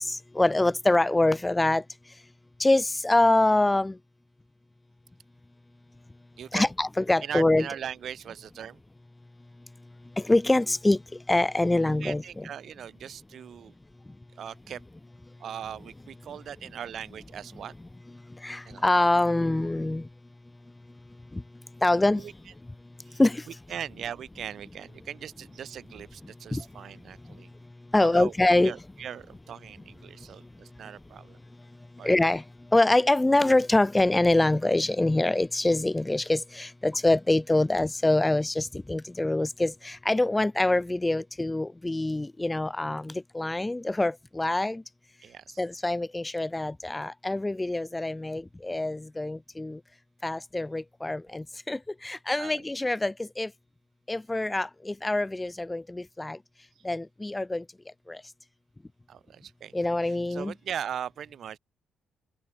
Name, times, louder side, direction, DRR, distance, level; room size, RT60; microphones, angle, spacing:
voice 1, 0.1-1.8 2.6-3.9 6.5-7.7 10.2-11.0 11.3-12.5 18.4-20.0 21.8-22.2 23.2-23.4 26.5-26.6 27.9-28.7 32.0-32.4 32.7-44.8 45.6-49.8 50.2-53.5 54.1-56.4 56.9-57.6 58.1-58.2 59.7-60.5, left 2 dB, 15° left, 1.7 m, -25 dB
voice 2, 6.4-6.7 7.2-8.8 12.0-13.7 14.4-14.8 15.4-17.7 18.7-18.8 22.1-22.3 23.1-23.2 23.7-27.5 28.0-31.4 32.0-32.1 45.2-45.6 52.4-52.6 59.1-59.7 60.0-61.6, right 9 dB, 60° right, 4.5 m, -39 dB
cardioid pair, 90°, 0 cm